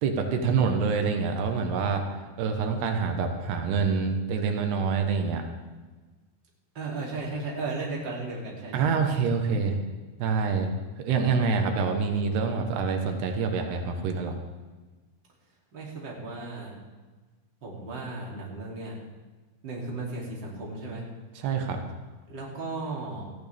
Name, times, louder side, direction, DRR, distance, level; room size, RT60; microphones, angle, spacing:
voice 1, 0.0-2.0 2.4-5.4 8.7-9.8 10.2-10.7 11.0-14.3 21.4-21.8, right 5 dB, 90° right, 4 dB, 3.4 m, -26 dB
voice 2, 6.7-8.9 15.7-16.7 17.6-19.0 19.6-21.0 22.3-23.2, right 3 dB, 30° right, -3 dB, 3.2 m, -35 dB
19.0 x 14.5 x 3.6 m, 1.3 s
omnidirectional pair, 4.6 m